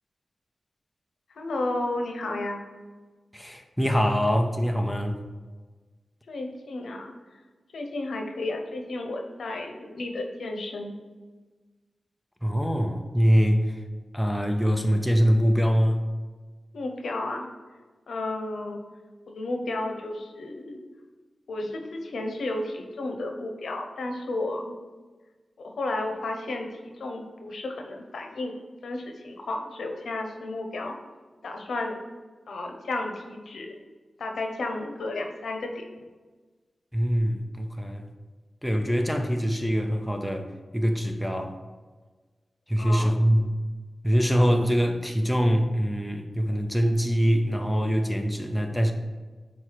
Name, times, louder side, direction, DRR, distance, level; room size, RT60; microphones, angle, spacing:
voice 1, 1.4-2.6 6.3-7.1 7.7-10.9 16.7-17.5 18.1-18.8 19.3-20.8 21.5-24.7 25.6-28.6 28.8-31.0 31.4-32.0 32.5-33.8 34.2-35.8 42.8-43.1, left 2 dB, 85° left, 3 dB, 0.8 m, -32 dB
voice 2, 3.3-5.2 12.4-13.8 14.1-16.0 36.9-38.1 38.6-40.5 40.7-41.6 42.7-43.5 44.0-48.9, equal, 5° left, 4 dB, 0.5 m, -23 dB
4.7 x 4.5 x 5.7 m, 1.3 s
wide cardioid pair, 150°, 0 cm